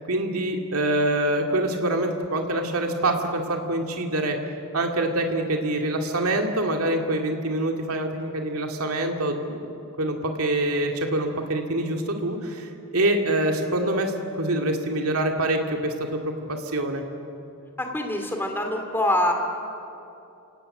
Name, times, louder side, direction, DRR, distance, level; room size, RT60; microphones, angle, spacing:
voice 1, 0.1-4.4 4.7-17.0, right 1 dB, 80° right, 3 dB, 2.3 m, -25 dB
voice 2, 17.8-19.3, left 1 dB, 10° left, 3 dB, 2.4 m, -24 dB
29.5 x 17.5 x 8.8 m, 2.8 s
head